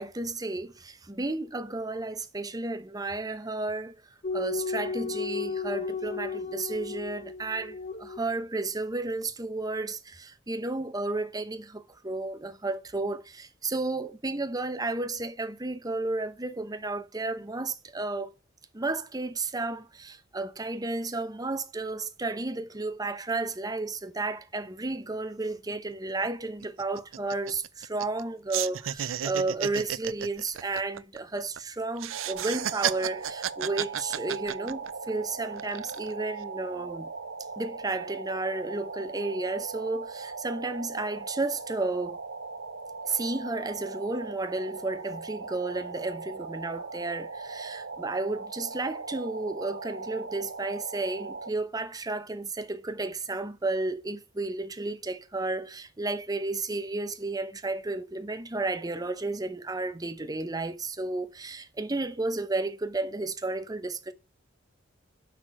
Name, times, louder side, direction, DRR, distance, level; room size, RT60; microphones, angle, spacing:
voice 1, 0.0-4.0 4.3-18.3 18.7-37.1 37.6-42.2 43.1-64.1, right 2 dB, 20° right, 0.8 m, -32 dB
sound 1, 4.2-8.4, left 4 dB, 40° left, 0.6 m, -34 dB
sound 2, 25.7-25.8 26.1-26.3 26.6-28.2 28.5-31.6 32.0-35.1 35.5-36.1, right 10 dB, 85° right, 0.5 m, -33 dB
sound 3, 32.1-51.5, right 4 dB, 65° right, 1.0 m, -39 dB
6.1 x 5.8 x 6.0 m
head